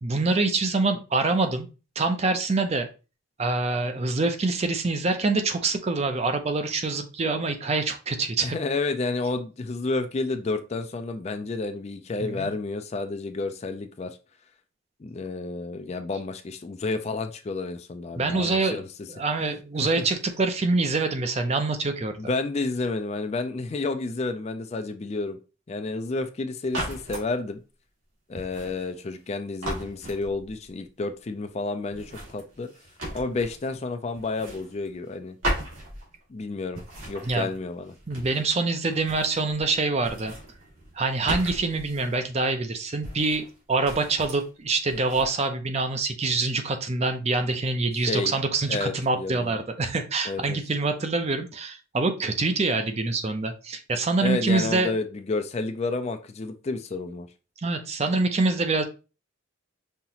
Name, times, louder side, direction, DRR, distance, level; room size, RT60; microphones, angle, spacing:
voice 1, 0.0-1.7 2.0-2.9 3.4-8.6 12.2-12.5 18.1-18.8 19.1-22.1 37.2-37.5 38.1-40.3 40.9-54.9 57.6-58.8, right 3 dB, 30° right, 7 dB, 0.5 m, -25 dB
voice 2, 8.4-14.2 15.0-18.9 22.2-25.4 25.7-27.6 28.3-32.7 33.1-35.4 36.3-36.8 37.1-37.9 48.0-48.3 48.7-49.6 50.3-50.6 54.2-57.3, left 3 dB, 30° left, 8 dB, 0.3 m, -30 dB
sound 1, 26.7-27.3 28.3-29.3 29.6-30.7 31.9-33.8 34.1-35.2 35.4-36.4 36.7-38.5 38.8-39.7 40.0-42.2 43.0-43.6 43.8-44.5 44.9-45.3, right 1 dB, 75° right, 2.2 m, -36 dB
5.5 x 2.9 x 2.8 m, 0.32 s
head